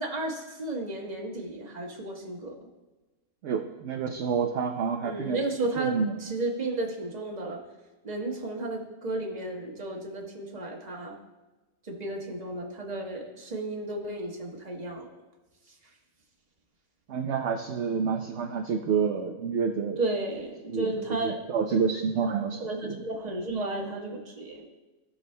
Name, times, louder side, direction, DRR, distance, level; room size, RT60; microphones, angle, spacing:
voice 1, 0.0-2.5 5.0-7.6 8.0-11.1 11.8-15.1 20.0-21.4 22.6-24.7, right 2 dB, 30° right, -1 dB, 1.3 m, -33 dB
voice 2, 3.4-5.4 5.8-6.2 17.1-20.0 20.7-23.0, right 6 dB, 65° right, 4 dB, 0.8 m, -29 dB
16.5 x 6.2 x 2.2 m, 1.1 s
omnidirectional pair, 1.5 m